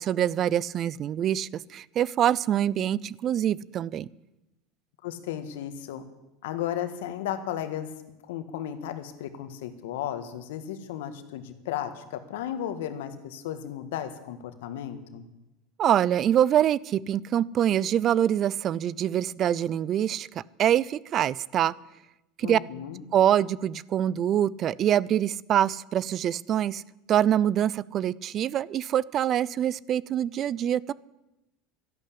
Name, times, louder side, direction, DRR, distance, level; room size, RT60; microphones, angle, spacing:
voice 1, 0.0-4.1 15.8-21.7 22.4-22.6 23.1-26.8 27.1-30.9, right 10 dB, 45° right, 23 dB, 0.5 m, -25 dB
voice 2, 5.0-6.0 6.4-7.9 8.2-15.3 22.4-23.0, left 10 dB, 80° left, 10 dB, 1.7 m, -34 dB
13.0 x 11.5 x 8.6 m, 0.96 s
supercardioid pair, 105°, 0 cm